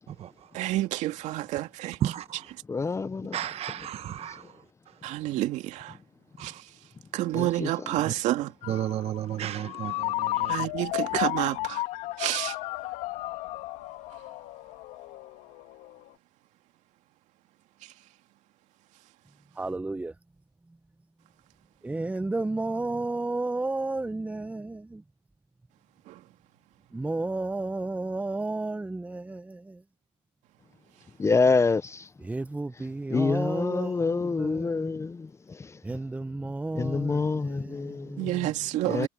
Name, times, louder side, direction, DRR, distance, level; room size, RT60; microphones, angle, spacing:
voice 1, 0.5-2.0 5.0-5.9 6.4-6.5 7.1-8.5 10.5-11.8 12.2-12.5 26.1-26.2 38.2-39.1, right 15 dB, 70° right, 2.4 m, -29 dB
voice 2, 2.0-2.5 3.3-4.4 6.4-6.5 8.1-8.2 8.7-10.7 11.1-11.2, right 11 dB, 55° right, 1.1 m, -33 dB
voice 3, 2.7-3.4 7.3-7.7 31.2-32.0 33.1-35.3 36.7-38.3 38.8-39.1, left 4 dB, 20° left, 0.8 m, -26 dB
Ringtone, 8.6-16.1, left 18 dB, 75° left, 3.0 m, -33 dB
voice 4, 19.6-20.1 21.8-25.0 26.9-29.8 32.2-34.9 35.8-38.4, right 2 dB, 10° right, 0.8 m, -32 dB
supercardioid pair, 85°, 13 cm